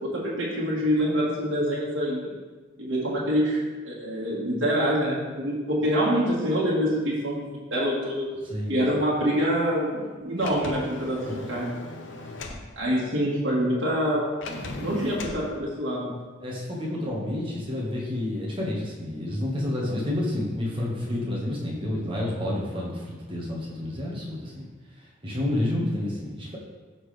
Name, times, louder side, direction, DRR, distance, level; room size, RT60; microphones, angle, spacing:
voice 1, 0.0-2.3 2.8-8.3 8.7-11.7 12.8-14.2 14.8-16.1, equal, 70° right, -6 dB, 1.9 m, -26 dB
voice 2, 8.5-8.9 12.1-12.3 16.4-24.7 25.2-26.6, left 1 dB, 25° right, -5 dB, 1.6 m, -29 dB
Sliding door, 10.4-12.7 14.4-15.4, left 2 dB, 65° left, 0.7 m, -38 dB
12.0 x 4.1 x 3.4 m, 1.3 s
head